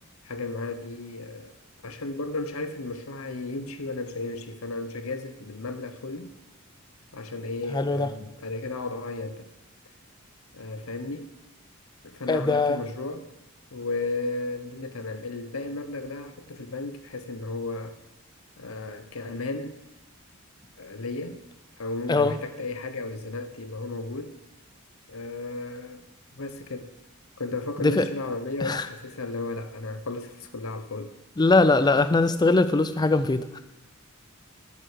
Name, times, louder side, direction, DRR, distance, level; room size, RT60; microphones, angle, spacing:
voice 1, 0.2-1.5 1.8-6.3 7.1-9.5 10.5-11.3 12.0-13.3 13.7-18.0 18.6-19.8 20.8-21.4 21.8-24.3 25.1-26.1 26.3-26.9 27.4-31.1, left 3 dB, 90° left, 1.0 m, -34 dB
voice 2, 7.7-8.1 12.3-12.8 22.1-22.3 27.8-28.0 28.6-28.8 31.4-33.6, left 3 dB, 20° left, 0.4 m, -21 dB
12.5 x 7.5 x 6.7 m
head